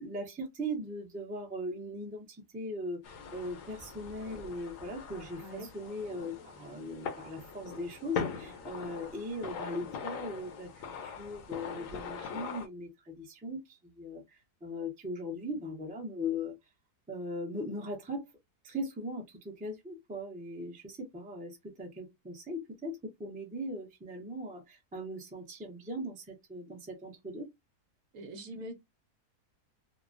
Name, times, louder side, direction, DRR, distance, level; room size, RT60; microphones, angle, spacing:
voice 1, 0.0-16.5 17.1-18.2 18.6-27.5, left 1 dB, 10° right, 0.5 m, -39 dB
sound 1, 3.0-12.7, left 6 dB, 60° left, 1.0 m, -41 dB
voice 2, 5.4-5.7 28.1-28.7, right 1 dB, 65° right, 1.1 m, -43 dB
3.2 x 2.1 x 2.5 m
omnidirectional pair, 1.7 m